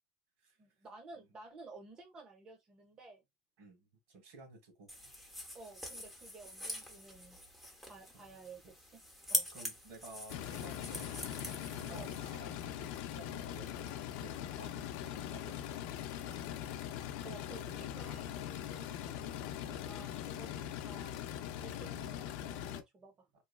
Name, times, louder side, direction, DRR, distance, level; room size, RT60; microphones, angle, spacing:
voice 1, 0.6-3.2 5.5-7.4 7.8-8.6 8.9-9.0 9.3-9.5 11.9-12.2 17.2-21.2 21.6-23.1, right 3 dB, 30° right, 0.8 m, -53 dB
voice 2, 3.6-4.9 9.5-11.2 11.4-16.4 20.3-20.5, right 2 dB, 70° right, 1.5 m, -55 dB
sound 1, 4.9-12.4, left 1 dB, 5° right, 0.8 m, -43 dB
sound 2, 10.3-22.8, left 10 dB, 70° left, 0.5 m, -41 dB
3.1 x 2.2 x 2.3 m
supercardioid pair, 130°, 3 cm